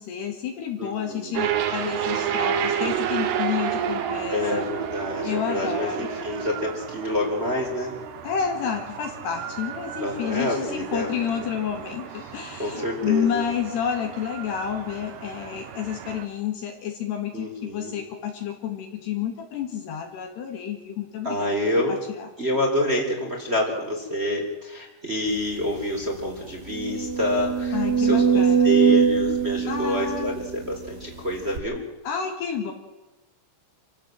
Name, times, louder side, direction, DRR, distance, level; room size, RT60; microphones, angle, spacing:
voice 1, 0.0-4.7 5.2-6.1 8.2-21.5 21.9-22.3 27.7-28.7 29.7-30.4 32.0-32.7, left 8 dB, 60° left, 4 dB, 3.7 m, -30 dB
voice 2, 0.8-1.5 4.3-7.9 10.0-11.3 12.6-13.5 17.3-17.9 21.2-22.0 22.4-31.8, left 1 dB, 15° right, 0 dB, 3.7 m, -27 dB
sound 1, 1.3-16.2, right 9 dB, 65° right, 3.2 m, -31 dB
sound 2, 25.5-25.6 26.0-26.1 26.7-30.9 31.5-31.6, right 6 dB, 30° right, 2.1 m, -22 dB
28.0 x 16.0 x 7.9 m, 1.1 s
omnidirectional pair, 5.8 m